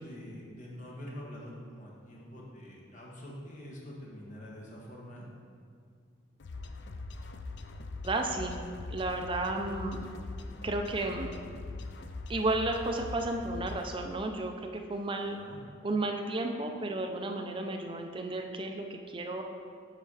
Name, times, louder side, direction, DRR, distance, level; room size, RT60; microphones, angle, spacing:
voice 1, 0.0-5.3 15.3-15.6, equal, 40° left, -3 dB, 1.2 m, -45 dB
sound 1, 6.4-13.9, left 3 dB, 60° left, 0.4 m, -42 dB
voice 2, 8.0-10.0 10.6-11.3 12.3-15.4 15.8-19.4, right 2 dB, 25° right, 3 dB, 0.5 m, -33 dB
7.7 x 4.4 x 4.8 m, 2.2 s
head